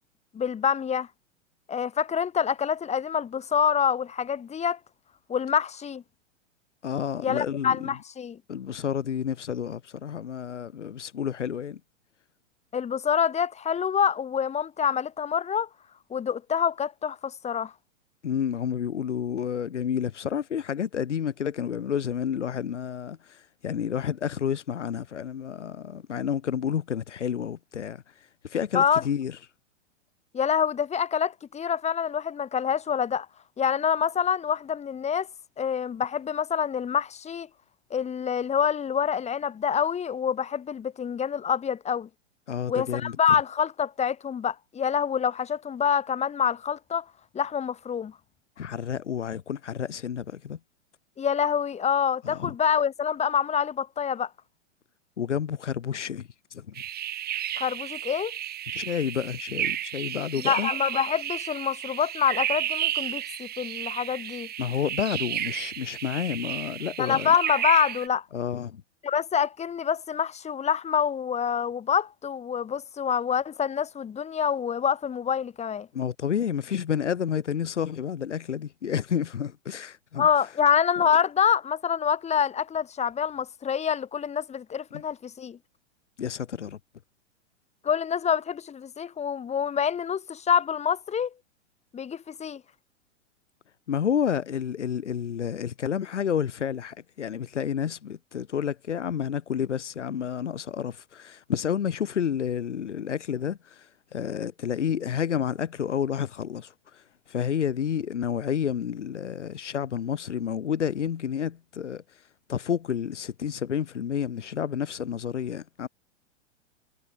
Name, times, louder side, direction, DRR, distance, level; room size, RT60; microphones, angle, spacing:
voice 1, 0.3-1.1 1.7-4.8 5.3-6.0 7.2-8.4 12.7-15.7 16.1-17.7 28.7-29.0 30.3-33.3 33.6-35.3 35.6-37.5 37.9-42.1 42.7-47.0 47.3-48.1 51.2-54.3 57.6-58.3 60.5-64.5 67.0-68.2 69.0-75.9 80.2-85.6 87.8-91.3 91.9-92.6, left 7 dB, 15° left, 4.3 m, -26 dB
voice 2, 6.8-7.9 8.5-11.8 18.2-29.4 42.5-43.2 48.6-50.6 52.2-52.5 55.2-56.8 58.7-60.7 64.6-67.3 68.3-68.8 75.9-80.3 84.9-85.0 86.2-86.8 93.9-115.9, left 8 dB, 70° left, 5.3 m, -30 dB
sound 1, 56.7-68.1, right 11 dB, 25° right, 6.9 m, -32 dB
figure-of-eight pair, 105°, 37 cm